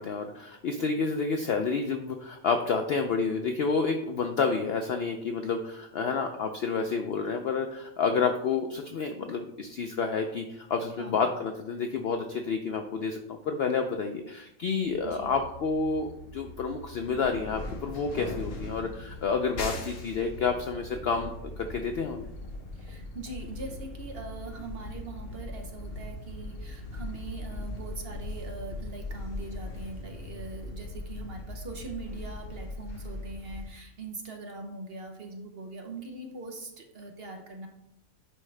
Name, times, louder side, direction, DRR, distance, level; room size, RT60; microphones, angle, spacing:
voice 1, 0.0-22.3, left 5 dB, 70° left, 5 dB, 0.6 m, -29 dB
voice 2, 11.0-11.3 15.0-15.3 22.7-37.7, right 3 dB, 50° right, 3 dB, 0.9 m, -42 dB
sound 1, 14.8-33.7, left 2 dB, 50° left, 1.0 m, -40 dB
9.9 x 3.6 x 3.3 m, 0.82 s
omnidirectional pair, 1.5 m